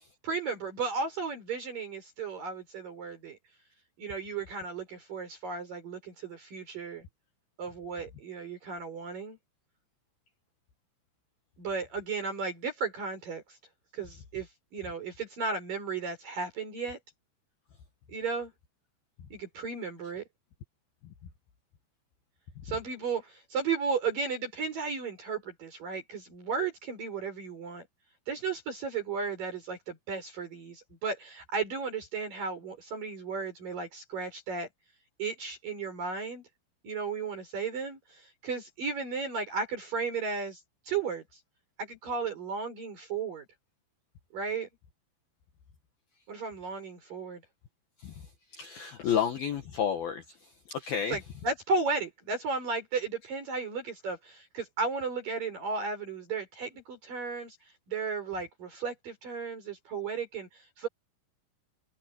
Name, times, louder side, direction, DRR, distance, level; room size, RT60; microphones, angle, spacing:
voice 1, 0.2-3.4 4.0-7.0 7.6-9.4 11.6-13.6 13.9-17.0 18.1-18.5 19.3-20.3 22.6-27.8 28.3-34.7 35.2-36.4 36.8-40.6 40.9-41.2 41.8-43.4 44.3-44.7 46.3-47.4 49.0-49.2 51.1-57.6 57.9-60.9, right 4 dB, 40° right, 6.4 m, -34 dB
voice 2, 48.5-50.2 50.7-51.2, left 8 dB, 65° left, 2.7 m, -30 dB
omnidirectional pair, 5.9 m